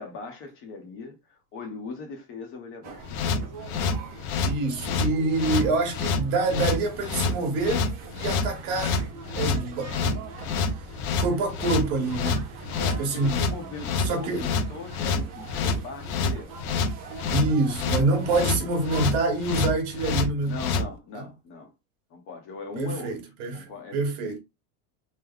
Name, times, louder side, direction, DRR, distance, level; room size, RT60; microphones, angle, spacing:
voice 1, 0.0-3.4 12.8-16.5 20.5-21.7 22.1-23.2 23.5-24.0 24.3-24.4, left 4 dB, 30° left, 0.7 m, -39 dB
sound 1, 2.8-19.2, right 5 dB, 25° right, 0.4 m, -43 dB
sound 2, 3.1-20.9, left 4 dB, 80° left, 0.9 m, -27 dB
voice 2, 4.4-9.1 9.4-10.2 10.5-10.7 11.2-12.4 13.0-13.5 14.0-14.5 17.3-20.6 21.1-21.2 22.8-24.4, right 3 dB, 50° right, 1.2 m, -26 dB
3.2 x 2.1 x 3.7 m
supercardioid pair, 160°, 43 cm